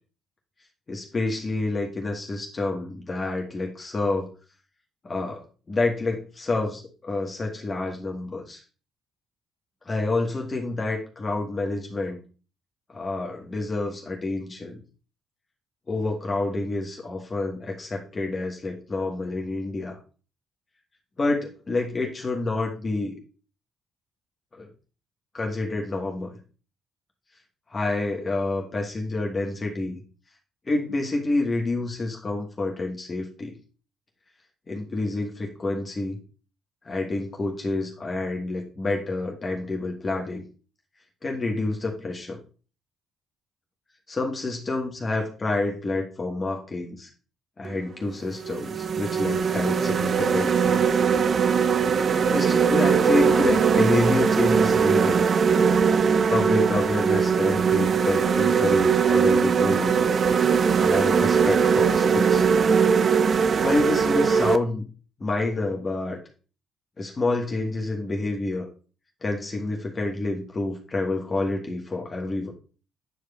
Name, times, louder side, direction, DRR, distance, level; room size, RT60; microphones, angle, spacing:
voice 1, 0.9-4.3 5.0-5.4 5.7-8.6 9.8-12.2 12.9-14.8 15.9-20.0 21.2-23.1 24.6-24.7 25.3-26.4 27.7-30.0 30.7-33.5 34.7-36.2 36.8-40.4 41.2-42.4 44.1-47.1 47.6-50.8 52.3-55.3 56.3-60.0 60.8-62.5 63.6-64.8 65.2-66.2 67.0-68.7 69.2-72.5, left 2 dB, 35° left, 0 dB, 1.3 m, -28 dB
sound 1, 47.6-47.8 48.4-64.6, right 6 dB, 50° right, 0.4 m, -21 dB
9.3 x 4.8 x 2.3 m, 0.37 s
hypercardioid pair, 45°, 0 cm